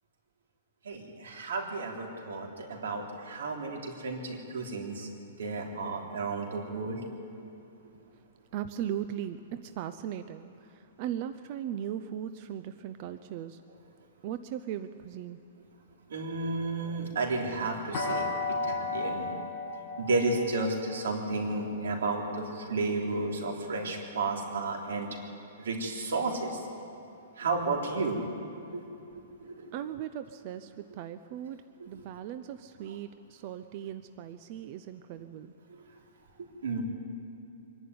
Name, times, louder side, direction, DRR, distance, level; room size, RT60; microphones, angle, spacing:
voice 1, 0.8-5.1 5.4-7.0 16.1-18.3 18.6-19.3 20.0-25.2 25.6-26.6 27.4-28.2 28.6-29.0 29.4-29.8 35.7-35.8 36.6-36.8, right 3 dB, 85° right, 1 dB, 3.5 m, -32 dB
voice 2, 8.5-13.6 14.2-15.4 29.7-35.5, right 10 dB, 35° right, 10 dB, 0.5 m, -38 dB
sound 1, 17.9-23.8, left 3 dB, 20° left, 6.1 m, -36 dB
24.5 x 11.0 x 9.5 m, 2.9 s
hypercardioid pair, 170°, 0 cm